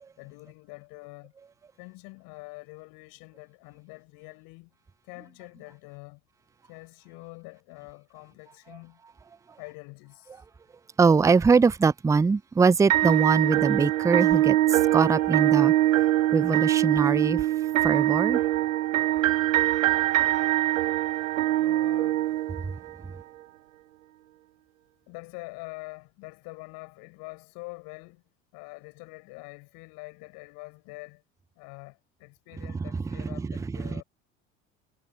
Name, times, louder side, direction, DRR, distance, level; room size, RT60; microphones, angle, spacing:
voice 1, 0.2-1.3 1.8-4.7 5.0-6.2 6.6-9.0 9.6-10.4 21.5-22.3 25.1-28.2 28.5-31.2 31.6-34.0, left 28 dB, 60° left, 7.3 m, -45 dB
voice 2, 11.0-15.7 16.3-17.5 17.8-18.4 33.2-34.0, right 5 dB, 10° right, 0.5 m, -23 dB
sound 1, 12.9-22.9, right 15 dB, 80° right, 0.5 m, -23 dB
figure-of-eight pair, 65°, 39 cm